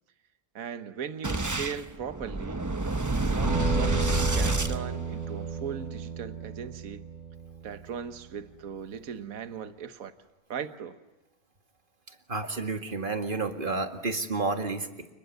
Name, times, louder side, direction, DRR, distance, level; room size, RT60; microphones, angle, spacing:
voice 1, 0.6-2.6 3.2-7.1 7.6-10.1 10.5-11.0, right 7 dB, 70° right, 10 dB, 1.6 m, -38 dB
Boom, 1.2-5.6, right 2 dB, 15° right, 0.7 m, -28 dB
Acoustic guitar, 3.4-8.3, right 5 dB, 90° right, 8.4 m, -34 dB
voice 2, 12.1-15.1, right 3 dB, 35° right, 6 dB, 2.1 m, -31 dB
29.5 x 21.0 x 9.5 m, 1.1 s
omnidirectional pair, 1.6 m